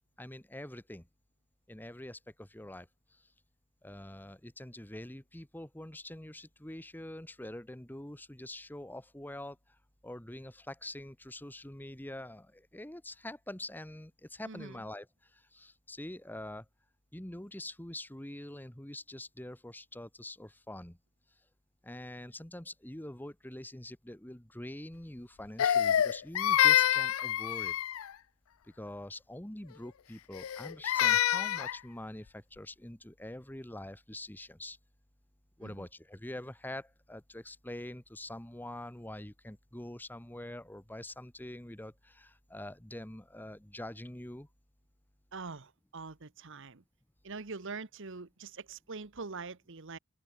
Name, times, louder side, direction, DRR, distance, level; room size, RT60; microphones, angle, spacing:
voice 1, 0.2-1.1 1.7-3.3 3.8-9.8 10.0-16.7 17.1-21.0 21.8-27.8 28.6-34.8 35.6-44.5, left 1 dB, 10° left, 1.2 m, -45 dB
voice 2, 14.4-14.8 35.6-35.9 45.3-46.8 47.2-50.0, right 4 dB, 65° right, 1.2 m, -44 dB
Crying sobbing, 25.6-28.1 30.3-31.8, left 10 dB, 75° left, 0.4 m, -27 dB
open air
head